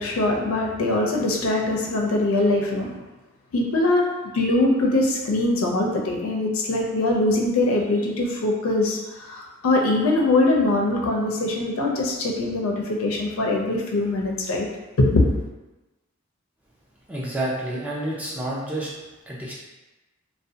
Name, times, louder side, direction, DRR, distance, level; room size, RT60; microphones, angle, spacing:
voice 1, 0.0-2.9 3.5-4.1 4.3-9.0 9.3-12.7 13.0-14.7 15.0-15.3, left 2 dB, 85° left, 0 dB, 0.4 m, -22 dB
voice 2, 17.1-18.9 19.3-19.5, right 1 dB, 5° right, -6 dB, 0.5 m, -29 dB
2.4 x 2.1 x 2.6 m, 1.1 s
head